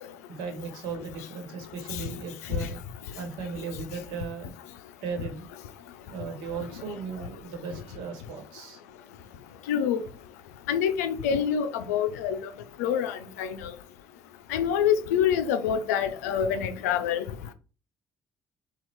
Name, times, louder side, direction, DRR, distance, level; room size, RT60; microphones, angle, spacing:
voice 1, 0.3-2.8 3.1-4.5 5.0-5.5 6.0-8.8, right 5 dB, 75° right, 1.2 m, -37 dB
voice 2, 9.7-10.0 10.7-12.4 12.8-13.7 14.5-17.2, left 8 dB, 85° left, 0.4 m, -26 dB
4.3 x 2.4 x 4.5 m
hypercardioid pair, 55°, 8 cm